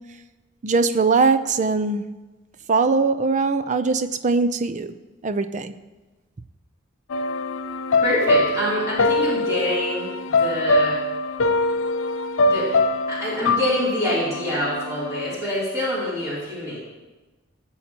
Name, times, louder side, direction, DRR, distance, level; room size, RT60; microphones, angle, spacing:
voice 1, 0.6-2.0 2.7-4.9 5.2-5.7, right 4 dB, 35° right, 11 dB, 0.5 m, -21 dB
sound 1, 7.1-15.4, left 2 dB, 65° left, 0.5 m, -23 dB
voice 2, 8.0-11.0 12.4-12.7 13.1-16.8, left 1 dB, 15° right, -10 dB, 3.1 m, -25 dB
17.0 x 7.2 x 2.9 m, 1.2 s
head